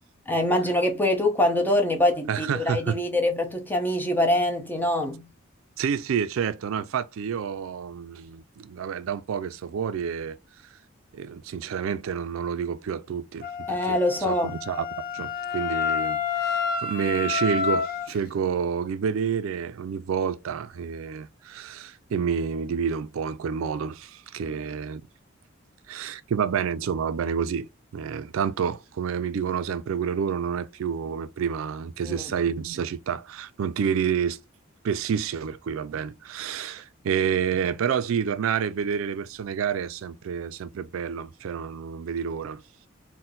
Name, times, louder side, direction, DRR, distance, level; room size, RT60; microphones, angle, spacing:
voice 1, 0.3-5.3 13.7-14.6 32.0-32.3, left 1 dB, 10° left, 0.8 m, -24 dB
voice 2, 2.3-2.9 5.8-10.4 11.1-14.9 15.1-25.0 25.9-27.7 27.9-34.4 34.8-42.6, right 7 dB, 70° right, 0.3 m, -29 dB
Wind instrument woodwind instrument, 13.4-18.1, left 6 dB, 45° left, 0.8 m, -29 dB
4.3 x 2.1 x 3.8 m
head